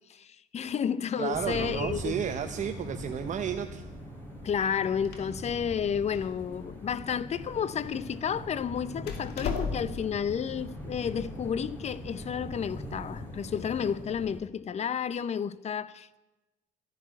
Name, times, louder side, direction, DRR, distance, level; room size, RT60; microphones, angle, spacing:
voice 1, 0.1-2.2 4.4-16.2, left 7 dB, 40° left, 0.8 m, -31 dB
voice 2, 1.2-3.8, right 9 dB, 45° right, 0.8 m, -32 dB
sound 1, 1.3-14.4, left 1 dB, 10° left, 4.7 m, -41 dB
Door, 4.6-10.2, left 5 dB, 70° left, 2.7 m, -39 dB
14.0 x 11.5 x 8.3 m
cardioid pair, 110°, 17 cm